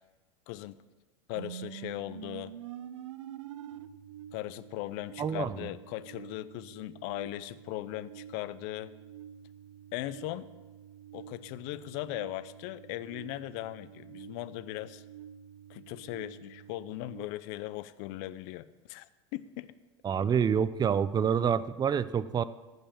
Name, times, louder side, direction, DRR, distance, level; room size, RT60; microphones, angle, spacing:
voice 1, 0.5-0.8 1.3-2.5 4.3-8.9 9.9-10.5 11.1-15.0 15.7-19.1 19.3-19.7, left 16 dB, 60° left, 16 dB, 0.6 m, -38 dB
sound 1, 1.3-17.3, right 10 dB, 90° right, 0.5 m, -48 dB
voice 2, 5.2-5.7 20.0-22.4, right 7 dB, 25° right, 16 dB, 0.5 m, -27 dB
15.0 x 5.6 x 7.2 m, 1.2 s
hypercardioid pair, 90°, 15 cm